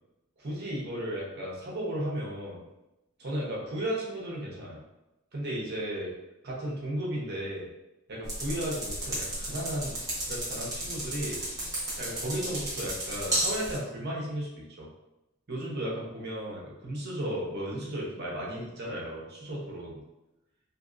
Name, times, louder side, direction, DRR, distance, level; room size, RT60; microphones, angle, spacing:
voice 1, 0.4-2.6 3.2-4.8 5.3-6.1 6.4-7.7 8.1-11.4 12.0-14.9 15.5-20.0, right 1 dB, 50° right, -4 dB, 0.8 m, -34 dB
sound 1, 8.2-13.8, right 1 dB, 15° right, 0.9 m, -33 dB
2.9 x 2.6 x 2.5 m, 0.95 s
head